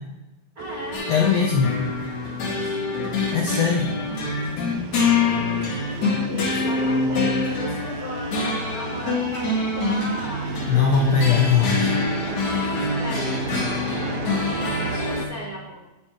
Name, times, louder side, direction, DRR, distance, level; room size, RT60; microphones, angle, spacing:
voice 1, 0.5-1.1 2.5-3.2 5.7-10.6 13.0-14.2 15.0-15.8, left 1 dB, 65° right, -3 dB, 0.9 m, -36 dB
sound 1, 0.6-15.3, right 7 dB, 85° right, 2.5 m, -35 dB
sound 2, 0.9-15.2, left 3 dB, 55° left, 2.9 m, -25 dB
voice 2, 1.1-1.7 3.3-3.9 10.7-12.0, left 6 dB, 75° left, 0 dB, 1.5 m, -20 dB
13.5 x 5.9 x 4.8 m, 1.1 s
omnidirectional pair, 4.2 m